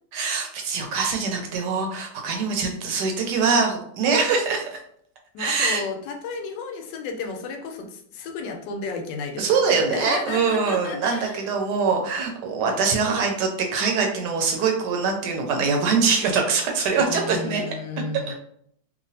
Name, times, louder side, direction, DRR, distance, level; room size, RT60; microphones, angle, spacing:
voice 1, 0.1-4.6 5.4-5.8 9.4-17.6 18.3-18.4, right 5 dB, 75° right, 2 dB, 1.2 m, -23 dB
voice 2, 5.3-9.4 9.7-11.5 17.0-18.3, left 4 dB, 80° left, 3 dB, 1.2 m, -33 dB
3.0 x 2.5 x 2.7 m, 0.67 s
omnidirectional pair, 1.9 m